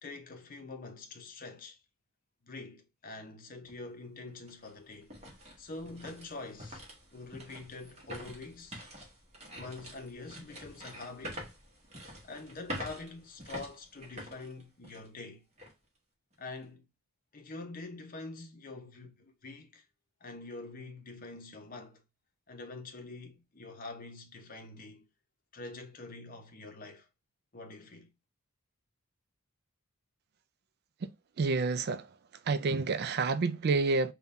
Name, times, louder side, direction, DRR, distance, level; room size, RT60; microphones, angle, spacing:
voice 1, 0.0-1.8 2.4-5.1 5.6-6.8 7.1-8.9 9.5-11.5 12.2-15.4 16.4-16.9 17.3-19.9 20.2-22.0 22.5-25.0 25.5-27.1 27.5-28.1, left 3 dB, 40° left, 0.7 m, -45 dB
sound 1, 3.7-3.8 4.3-15.2 15.6-15.7 16.3-16.6, equal, 30° right, 1.2 m, -46 dB
voice 2, 31.4-32.1 32.5-34.1, right 4 dB, 45° right, 0.3 m, -29 dB
3.7 x 2.3 x 4.0 m
head